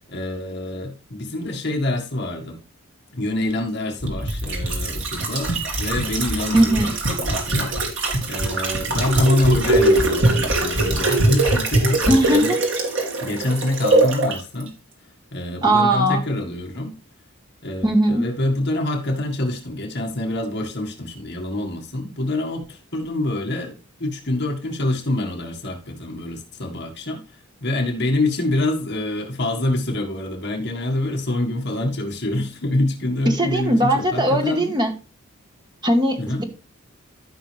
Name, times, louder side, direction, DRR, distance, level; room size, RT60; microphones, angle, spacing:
voice 1, 0.1-2.6 3.1-12.6 13.2-14.7 15.3-16.9 17.6-34.7 36.2-36.4, left 1 dB, 50° left, 1.8 m, -26 dB
sound 1, 4.0-14.4 14.7-14.8, right 2 dB, 60° right, 2.5 m, -22 dB
voice 2, 6.5-6.9 12.1-12.6 15.6-16.2 17.8-18.2 33.2-34.9 35.8-36.4, right 1 dB, 20° right, 1.5 m, -19 dB
14.0 x 5.7 x 3.4 m
head